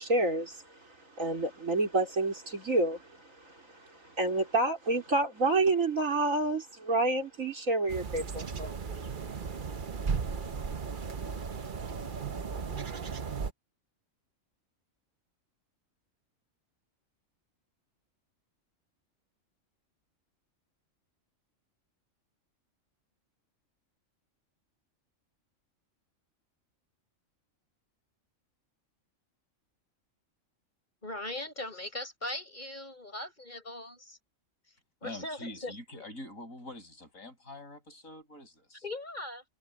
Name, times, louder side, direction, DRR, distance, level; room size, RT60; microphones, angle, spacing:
voice 1, 0.0-8.7, right 2 dB, 80° right, 4.9 m, -29 dB
sound 1, 7.9-13.5, right 5 dB, 40° right, 1.0 m, -36 dB
voice 2, 31.0-34.2 35.0-36.1 38.8-39.4, left 1 dB, 35° left, 7.0 m, -39 dB
voice 3, 35.0-38.8, left 2 dB, 85° left, 7.6 m, -45 dB
omnidirectional pair, 1.4 m